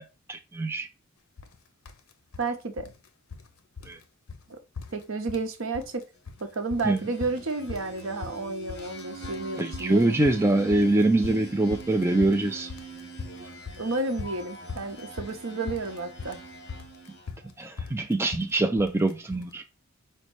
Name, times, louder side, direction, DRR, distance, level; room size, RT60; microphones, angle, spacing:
voice 1, 0.3-0.9 3.9-4.0 6.8-7.0 9.6-12.7 17.6-19.6, right 2 dB, 10° right, 0.4 m, -24 dB
sound 1, 1.4-1.6 1.9-2.5 2.8-3.5 3.8-4.0 4.3-4.4 4.8-5.5 5.7-6.4 6.7-19.5, left 5 dB, 80° left, 0.6 m, -41 dB
voice 2, 2.4-2.9 4.5-4.6 4.9-6.0 6.4-10.1 13.8-16.4, right 3 dB, 70° right, 0.8 m, -31 dB
sound 2, 6.6-17.5, right 3 dB, 55° left, 1.3 m, -44 dB
5.2 x 2.2 x 4.5 m
head